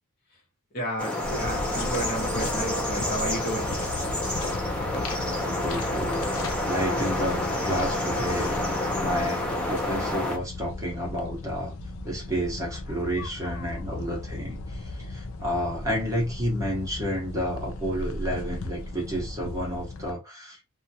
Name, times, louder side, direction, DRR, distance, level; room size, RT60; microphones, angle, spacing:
voice 1, 0.7-3.7, equal, 40° left, 0.9 m, -32 dB
sound 1, 1.0-10.4, left 1 dB, 5° left, 0.5 m, -29 dB
sound 2, 1.2-20.1, left 2 dB, 65° left, 0.4 m, -36 dB
voice 2, 5.3-6.2 6.6-11.7 12.0-20.6, equal, 15° right, 0.9 m, -31 dB
2.2 x 2.2 x 2.7 m
head